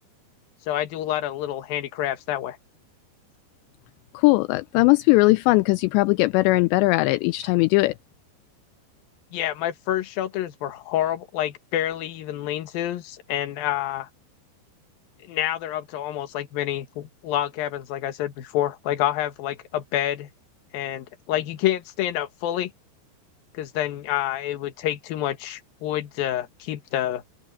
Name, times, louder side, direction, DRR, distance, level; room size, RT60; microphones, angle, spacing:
voice 1, 0.7-2.6 9.3-14.1 15.2-20.3 20.7-22.7 23.5-27.2, left 12 dB, 60° left, 2.9 m, -28 dB
voice 2, 4.1-7.9, left 22 dB, 85° left, 2.7 m, -19 dB
open air
omnidirectional pair, 5.2 m